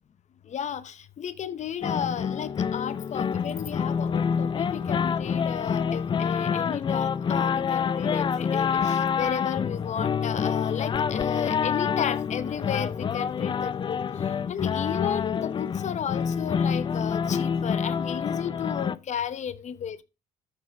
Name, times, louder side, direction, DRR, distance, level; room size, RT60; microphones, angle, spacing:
voice 1, 0.4-20.0, left 8 dB, 45° left, 0.8 m, -34 dB
sound 1, 1.6-18.0, equal, 10° left, 2.4 m, -57 dB
sound 2, 1.8-19.0, left 7 dB, 30° left, 0.4 m, -27 dB
13.0 x 5.0 x 3.3 m
cardioid pair, 110°, 17 cm